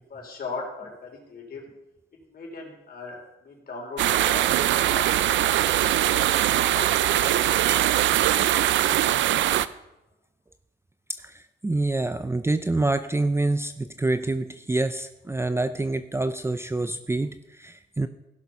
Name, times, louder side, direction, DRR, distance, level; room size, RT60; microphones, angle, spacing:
voice 1, 0.1-1.6 2.3-4.4 4.8-6.4 6.7-8.1, left 4 dB, 50° left, 0 dB, 4.3 m, -39 dB
sound 1, 4.0-9.7, right 12 dB, 70° right, 0.5 m, -22 dB
voice 2, 11.2-18.1, right 2 dB, 15° right, 10 dB, 0.5 m, -26 dB
16.5 x 7.0 x 5.4 m, 0.92 s
cardioid pair, 90°, 20 cm